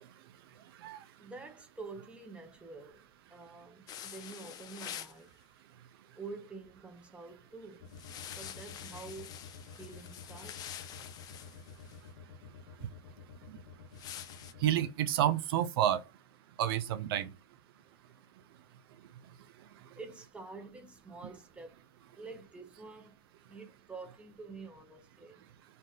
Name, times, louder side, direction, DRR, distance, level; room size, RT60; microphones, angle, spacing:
voice 1, 1.2-5.3 6.1-8.0 8.4-9.4 9.7-10.8 17.2-17.3 17.9-18.3 19.9-21.8 22.1-23.2 23.5-25.4, right 3 dB, 10° right, 0.6 m, -48 dB
sound 1, 3.9-5.2 7.9-12.0 13.9-14.5, left 10 dB, 30° left, 0.4 m, -46 dB
sound 2, 7.8-14.9, left 6 dB, 75° left, 0.7 m, -50 dB
voice 2, 14.6-16.0 16.6-17.3, right 11 dB, 60° right, 0.4 m, -29 dB
2.6 x 2.4 x 3.5 m
hypercardioid pair, 110°, 14 cm